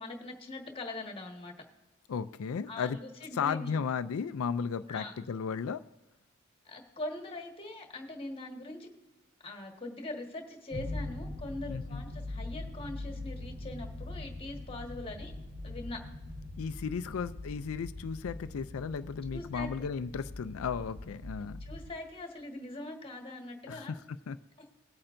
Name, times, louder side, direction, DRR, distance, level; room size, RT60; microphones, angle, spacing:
voice 1, 0.0-1.5 2.7-3.8 4.9-5.1 6.6-8.9 9.4-15.3 15.6-16.0 19.3-19.9 21.6-23.9, left 2 dB, 25° left, 3 dB, 1.5 m, -42 dB
voice 2, 2.1-3.0 3.3-5.8 11.7-12.0 16.6-21.6 23.7-24.0 24.3-24.4, left 6 dB, 75° left, 13 dB, 0.4 m, -35 dB
sound 1, 10.7-21.9, left 2 dB, 45° right, 1.3 m, -42 dB
19.0 x 8.6 x 2.6 m, 1.0 s
head